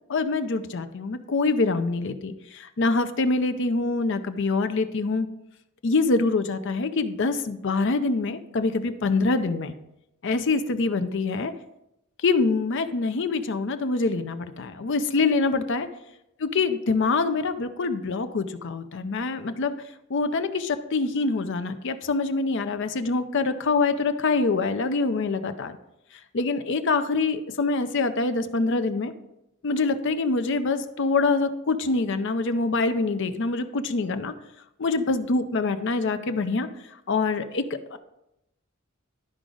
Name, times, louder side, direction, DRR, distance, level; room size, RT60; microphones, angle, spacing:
voice 1, 0.1-5.3 5.8-9.7 10.2-11.5 12.2-15.9 16.4-19.7 20.1-25.8 26.3-29.1 29.6-34.3 34.8-36.7 37.1-38.0, left 3 dB, 60° left, 10 dB, 0.6 m, -25 dB
12.0 x 5.0 x 3.8 m, 0.87 s
head